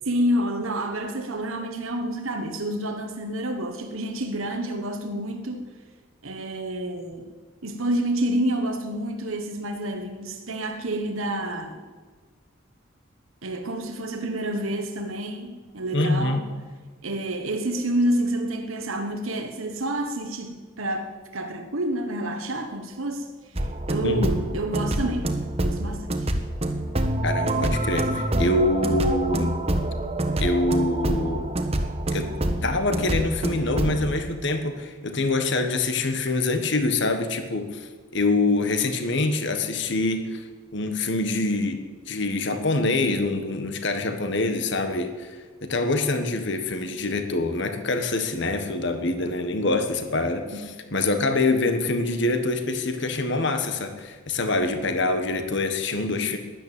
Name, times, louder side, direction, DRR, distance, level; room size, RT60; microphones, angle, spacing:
voice 1, 0.0-5.8 6.2-7.3 7.6-11.8 13.4-16.5 17.0-23.3 23.6-26.3 50.5-50.6, right 1 dB, 75° right, 5 dB, 1.3 m, -28 dB
voice 2, 15.9-16.4 24.0-24.3 27.2-29.5 30.4-31.5 32.1-32.3 32.6-40.4 40.7-41.8 42.1-56.4, left 2 dB, 55° left, 7 dB, 1.4 m, -25 dB
sound 1, 23.6-34.1, right 1 dB, 30° right, 1.2 m, -26 dB
13.0 x 11.0 x 9.1 m, 1.4 s
head